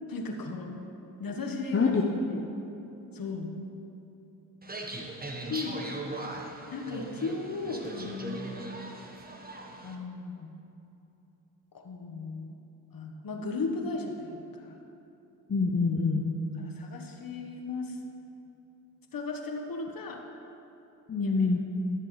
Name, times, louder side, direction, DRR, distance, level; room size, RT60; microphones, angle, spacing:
voice 1, 0.0-0.7 1.2-1.9 2.3-2.4 3.1-3.6 5.5-5.8 6.7-8.7 9.8-10.5 11.7-12.5 12.9-14.8 16.6-18.0 19.1-20.2 21.2-21.5, left 3 dB, 50° left, 3 dB, 1.4 m, -36 dB
sound 1, 4.6-9.9, right 2 dB, 20° right, 1.2 m, -39 dB
voice 2, 15.5-16.3 21.1-21.6, left 4 dB, 30° left, 0 dB, 0.8 m, -25 dB
14.0 x 6.8 x 3.2 m, 2.9 s
supercardioid pair, 50°, 45 cm